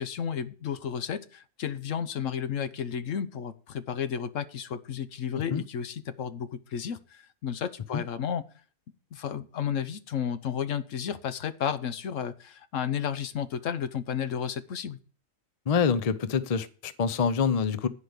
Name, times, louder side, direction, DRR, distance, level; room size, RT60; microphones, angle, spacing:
voice 1, 0.0-8.4 9.1-15.0, left 8 dB, 70° left, 1.2 m, -32 dB
voice 2, 15.7-17.9, left 6 dB, 40° left, 0.5 m, -26 dB
9.9 x 5.1 x 7.9 m
omnidirectional pair, 1.4 m